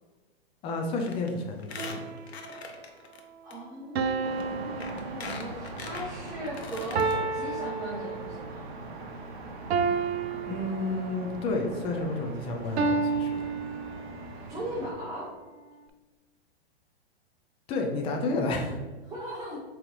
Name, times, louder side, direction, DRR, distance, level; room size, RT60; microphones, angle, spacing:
voice 1, 0.6-2.1 10.3-13.5 17.7-18.8, left 2 dB, 20° left, 2 dB, 0.4 m, -31 dB
Squeak, 1.0-1.3 1.6-3.2 3.5-3.6 4.4-4.5 4.8-7.1 7.5-7.6 7.8-7.9, left 5 dB, 80° left, 0.8 m, -41 dB
sound 1, 1.8-2.6 4.0-5.8 7.0-8.6 9.7-11.4 12.8-14.4, right 4 dB, 80° right, 0.5 m, -31 dB
voice 2, 3.4-8.7 14.5-15.3 19.0-19.6, right 1 dB, 10° right, -6 dB, 0.8 m, -38 dB
sound 2, 4.2-14.9, right 2 dB, 50° right, 0.8 m, -42 dB
4.8 x 3.0 x 3.1 m, 1.3 s
hypercardioid pair, 120°, 31 cm